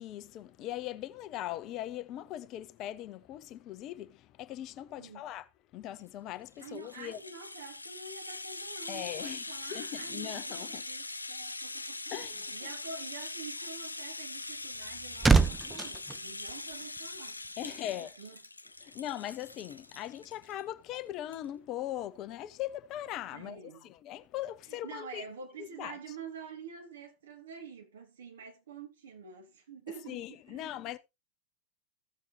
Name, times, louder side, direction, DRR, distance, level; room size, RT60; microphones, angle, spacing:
voice 1, 0.0-5.5 5.7-7.2 8.9-9.4 9.7-10.8 12.1-12.7 17.6-18.1 18.8-25.3 25.6-26.2 30.1-31.0, left 13 dB, 35° left, 0.8 m, -40 dB
voice 2, 5.0-5.3 6.6-17.9 18.2-18.3 18.8-18.9 23.3-23.9 24.8-30.7, right 5 dB, 65° right, 2.6 m, -47 dB
Rattle (instrument), 6.5-20.6 20.9-21.0 21.3-21.5, left 2 dB, 80° left, 0.5 m, -42 dB
sound 1, 14.5-17.2 17.4-17.7, right 4 dB, 10° right, 0.5 m, -28 dB
15.5 x 7.2 x 2.8 m
figure-of-eight pair, 90°, 0 cm